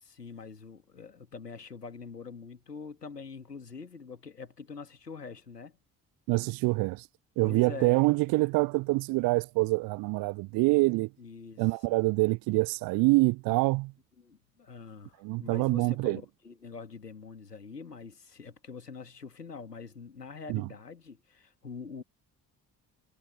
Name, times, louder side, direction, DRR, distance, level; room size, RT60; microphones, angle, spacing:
voice 1, 0.0-5.8 7.4-8.1 11.2-12.0 14.2-22.0, left 5 dB, 90° left, 2.4 m, -44 dB
voice 2, 6.3-7.0 7.4-11.1 11.6-13.9 15.2-16.2 20.5-20.7, right 24 dB, 50° right, 0.5 m, -26 dB
figure-of-eight pair, 45°, 47 cm